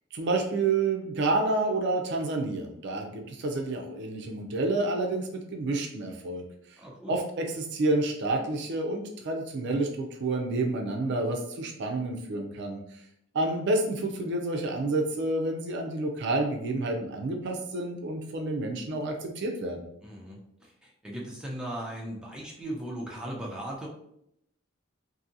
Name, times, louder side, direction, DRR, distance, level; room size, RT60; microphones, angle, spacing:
voice 1, 0.1-6.4 7.1-12.8 13.3-19.9, right 2 dB, 60° right, 3 dB, 0.4 m, -29 dB
voice 2, 6.8-7.2 20.0-23.9, right 1 dB, 5° right, -4 dB, 0.5 m, -38 dB
2.7 x 2.6 x 2.5 m, 0.76 s
head